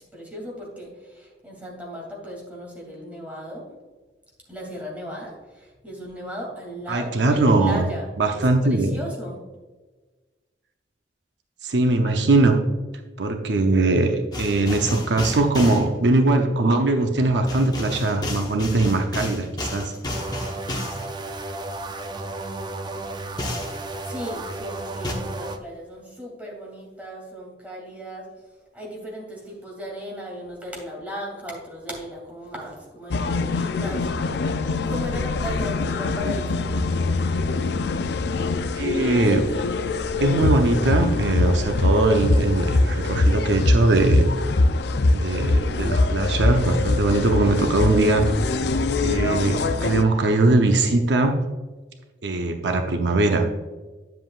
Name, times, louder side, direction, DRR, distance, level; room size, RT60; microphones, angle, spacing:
voice 1, 0.0-3.6 4.5-9.4 24.0-28.3 28.7-34.1 34.3-36.7, equal, 10° right, -3 dB, 2.6 m, -36 dB
voice 2, 6.9-7.9 8.2-8.9 11.6-12.6 13.2-19.9 38.8-39.5 40.2-44.3 45.1-48.3 49.0-51.4 52.2-53.5, right 2 dB, 75° right, 5 dB, 0.7 m, -21 dB
sound 1, 14.3-15.9 17.5-21.1 23.4-23.8 25.0-25.1, left 1 dB, 25° left, 1.1 m, -31 dB
sound 2, 20.1-25.6, right 2 dB, 25° right, 0.5 m, -33 dB
sound 3, 33.1-50.0, left 2 dB, 65° left, 0.4 m, -23 dB
9.6 x 7.6 x 2.4 m, 1.3 s
head